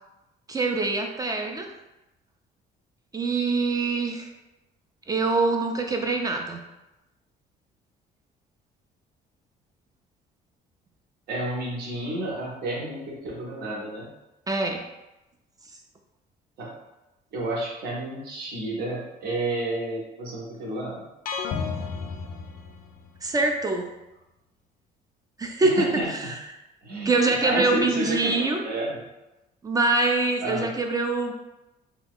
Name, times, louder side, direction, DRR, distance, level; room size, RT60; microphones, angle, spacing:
voice 1, 0.5-1.7 3.1-4.3 5.1-6.6 14.5-14.8 23.2-23.9 25.4-26.4 27.1-28.6 29.6-31.3, right 3 dB, 20° right, 3 dB, 0.4 m, -24 dB
voice 2, 11.3-14.1 16.6-16.8 17.3-21.0 25.6-26.3 26.8-29.0 30.4-30.7, right 1 dB, 70° right, -3 dB, 0.9 m, -31 dB
sound 1, 21.3-23.3, left 5 dB, 55° left, 0.4 m, -32 dB
2.8 x 2.3 x 3.6 m, 0.97 s
cardioid pair, 110°, 17 cm